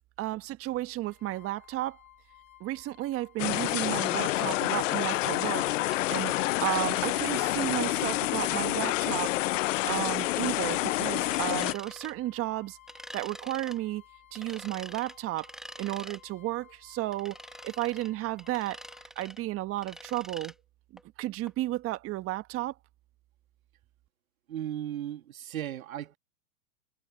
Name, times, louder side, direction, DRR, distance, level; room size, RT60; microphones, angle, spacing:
voice 1, 0.2-2.0 2.6-5.7 6.1-9.3 9.8-12.8 13.1-14.0 14.3-15.5 15.8-17.4 17.6-18.8 19.1-20.5 21.2-22.7, right 16 dB, 35° right, 1.3 m, -33 dB
sound 1, 1.1-19.1, left 14 dB, 90° left, 7.6 m, -57 dB
sound 2, 3.4-11.7, left 17 dB, 65° left, 0.6 m, -28 dB
sound 3, 3.8-3.9 4.5-4.6 5.2-5.3 5.9-6.0 7.6-7.7 8.2-8.3 8.9-9.0 9.5-9.6 10.3-10.4 11.3-12.1 12.9-13.8 14.3-16.2 17.1-18.1 18.4-19.4 19.8-20.5 21.0-21.1 21.5-21.6 21.9-22.0, right 1 dB, ahead, 1.2 m, -46 dB
voice 2, 24.5-26.2, right 11 dB, 80° right, 2.0 m, -36 dB
hypercardioid pair, 110°, 41 cm